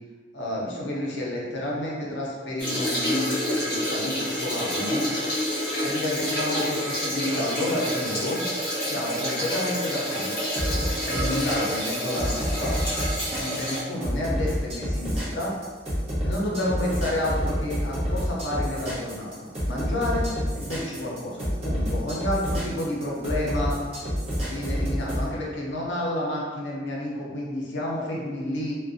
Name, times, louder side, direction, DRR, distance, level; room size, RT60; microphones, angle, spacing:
voice 1, 0.3-5.1 5.8-8.4 8.8-10.3 11.0-12.8 13.3-15.5 16.2-20.3 20.5-23.8 24.5-28.8, left 1 dB, 70° left, -3 dB, 0.6 m, -30 dB
sound 1, 2.6-13.8, equal, 25° left, 0.9 m, -28 dB
sound 2, 10.5-25.2, equal, 30° right, 0.7 m, -28 dB
2.4 x 2.1 x 2.5 m, 1.4 s
head